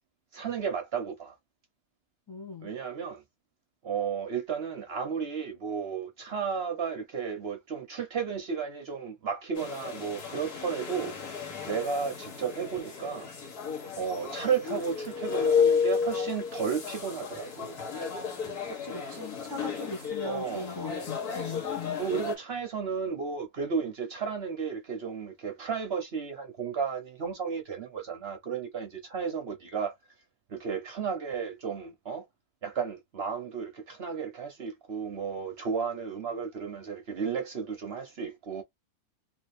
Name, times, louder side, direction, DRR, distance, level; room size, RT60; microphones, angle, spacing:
voice 1, 0.3-1.3 2.6-3.2 3.8-11.1 11.6-13.3 13.9-17.8 20.2-20.7 22.0-29.9 30.5-32.3 32.6-38.6, right 6 dB, 55° right, 0.8 m, -33 dB
voice 2, 2.3-2.7 18.7-22.0, left 3 dB, 25° left, 0.5 m, -39 dB
sound 1, 9.5-22.3, left 6 dB, 85° left, 1.8 m, -32 dB
3.1 x 2.7 x 3.1 m
omnidirectional pair, 1.6 m